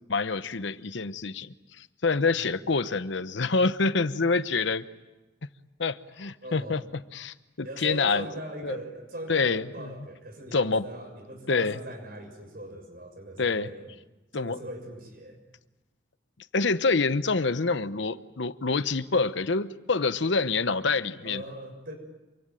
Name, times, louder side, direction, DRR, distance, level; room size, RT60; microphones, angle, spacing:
voice 1, 0.1-4.8 5.8-6.8 7.1-8.3 8.6-8.8 9.3-9.9 10.5-10.8 11.5-11.8 13.4-13.7 14.3-14.6 16.5-21.4, left 4 dB, 70° left, 13 dB, 0.9 m, -26 dB
voice 2, 6.4-6.8 7.6-13.9 14.4-15.4 21.2-22.0, right 1 dB, 50° right, 5 dB, 6.5 m, -40 dB
27.5 x 23.5 x 9.1 m, 1.1 s
head